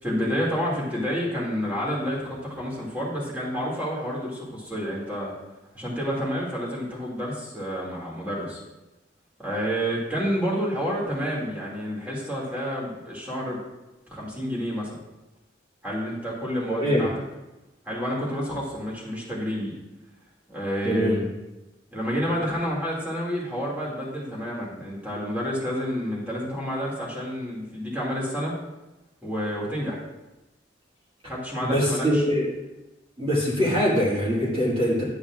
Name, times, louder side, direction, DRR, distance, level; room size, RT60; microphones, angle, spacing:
voice 1, 0.0-5.3 5.7-8.6 9.4-13.6 14.1-15.0 15.8-17.1 17.9-19.7 20.5-21.3 21.9-28.5 29.2-30.0 31.2-32.3, equal, 10° right, -5 dB, 2.2 m, -29 dB
voice 2, 20.8-21.2 31.6-32.5 33.2-35.0, equal, 30° right, -8 dB, 1.9 m, -23 dB
11.0 x 8.4 x 2.4 m, 1.0 s
head